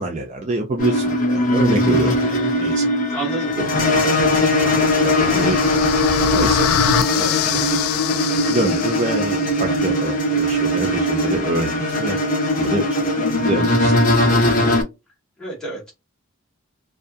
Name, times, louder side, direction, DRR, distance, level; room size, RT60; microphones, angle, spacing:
voice 1, 0.0-2.8 3.6-3.7 4.0-4.2 5.0-5.9 6.2-7.6 8.5-12.2 12.6-13.9, right 2 dB, 35° right, 0.4 m, -26 dB
sound 1, 0.8-14.8, left 1 dB, 40° left, 0.6 m, -19 dB
voice 2, 3.1-3.5 15.4-15.9, right 2 dB, 5° left, 1.3 m, -29 dB
sound 2, 4.5-9.5, left 8 dB, 90° left, 0.4 m, -24 dB
2.7 x 2.3 x 2.3 m
head